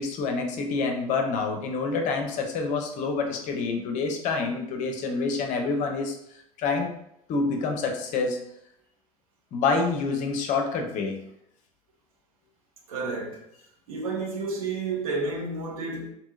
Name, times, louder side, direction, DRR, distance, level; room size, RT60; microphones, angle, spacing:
voice 1, 0.0-6.2 6.6-6.9 7.3-8.4 9.5-11.2, left 4 dB, 40° left, 0.6 m, -27 dB
voice 2, 12.9-13.4 13.9-16.1, right 3 dB, 65° right, 0.7 m, -31 dB
2.8 x 2.7 x 2.4 m
figure-of-eight pair, 70°, 19 cm